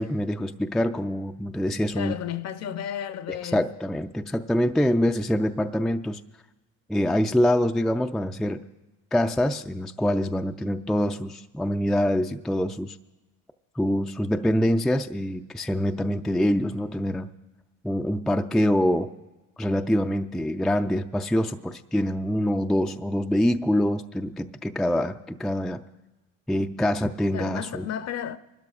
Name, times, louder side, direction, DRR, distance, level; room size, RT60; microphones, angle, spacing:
voice 1, 0.0-2.1 3.3-6.2 6.9-8.6 9.1-13.0 13.8-17.3 17.8-19.1 19.6-25.8 26.5-27.9, equal, ahead, 0.4 m, -25 dB
voice 2, 1.9-3.7 27.3-28.4, left 9 dB, 45° left, 0.7 m, -33 dB
27.0 x 12.5 x 2.4 m
supercardioid pair, 80°, 36 cm